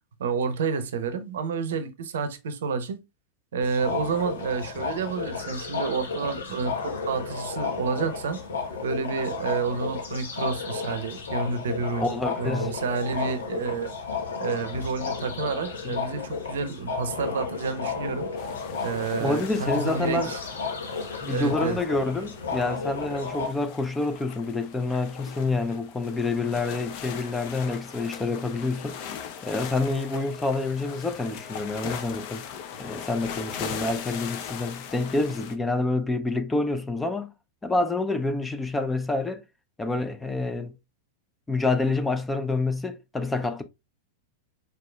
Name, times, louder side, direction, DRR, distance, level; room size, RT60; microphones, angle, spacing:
voice 1, 0.2-3.0 3.5-8.4 8.8-12.1 12.4-13.9 14.4-18.3 18.8-20.4 21.3-21.8, right 5 dB, 65° right, 0.7 m, -29 dB
sound 1, 3.6-23.5, left 5 dB, 70° left, 1.2 m, -33 dB
voice 2, 12.0-12.8 15.8-15.9 19.2-20.3 21.2-29.0 29.4-32.4 32.8-37.3 37.6-39.4 39.8-40.7 41.5-43.6, left 2 dB, 10° left, 0.6 m, -27 dB
sound 2, 18.4-35.6, left 8 dB, 50° left, 0.8 m, -40 dB
4.7 x 4.7 x 2.3 m
figure-of-eight pair, 95°, 0 cm